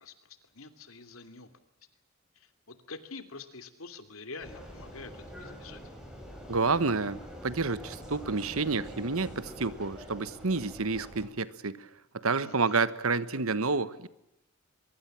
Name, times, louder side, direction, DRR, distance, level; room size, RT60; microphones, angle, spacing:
voice 1, 0.0-1.5 2.3-5.8 12.4-12.8, left 3 dB, 80° left, 9 dB, 2.9 m, -46 dB
Vehicle, 4.4-11.3, equal, 5° right, 6.0 m, -45 dB
voice 2, 6.5-11.9 12.1-14.1, right 4 dB, 85° right, 15 dB, 1.3 m, -29 dB
23.5 x 23.0 x 7.5 m, 0.85 s
head